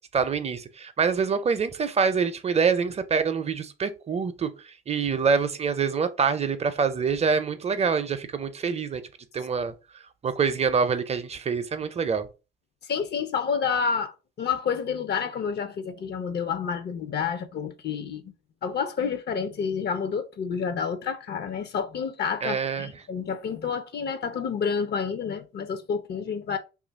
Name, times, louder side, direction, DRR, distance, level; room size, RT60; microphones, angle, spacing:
voice 1, 0.1-4.5 4.9-9.0 9.3-9.7 10.2-12.3 22.4-22.9, right 5 dB, 30° right, 0.5 m, -25 dB
voice 2, 12.9-18.3 18.6-26.6, left 6 dB, 55° left, 0.5 m, -29 dB
2.9 x 2.4 x 3.9 m
cardioid pair, 90°, 20 cm